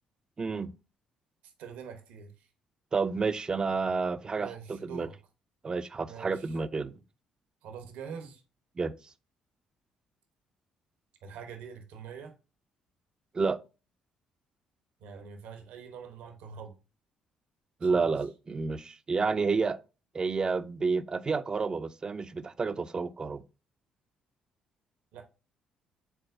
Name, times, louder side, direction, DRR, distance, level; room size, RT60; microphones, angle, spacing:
voice 1, 0.4-0.7 2.9-5.1 5.6-6.9 8.8-8.9 13.3-13.6 17.8-19.8 20.1-23.4, right 4 dB, 35° right, 0.4 m, -30 dB
voice 2, 1.6-2.5 4.4-5.1 6.0-6.5 7.6-8.4 11.2-12.3 15.0-16.8 17.8-18.1 25.1-25.2, right 6 dB, 75° right, 0.8 m, -44 dB
4.7 x 3.7 x 2.6 m
hypercardioid pair, 55°, 2 cm